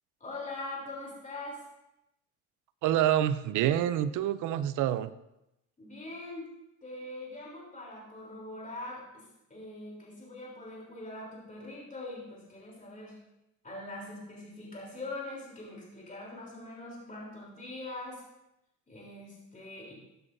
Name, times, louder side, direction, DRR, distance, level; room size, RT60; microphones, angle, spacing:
voice 1, 0.2-1.6 5.8-6.5 6.8-13.2 13.6-18.2 18.9-19.9, left 2 dB, 25° left, -4 dB, 3.3 m, -42 dB
voice 2, 2.8-5.1, right 11 dB, 85° right, 15 dB, 0.5 m, -27 dB
13.5 x 7.9 x 2.6 m, 0.87 s
cardioid pair, 90°, 30 cm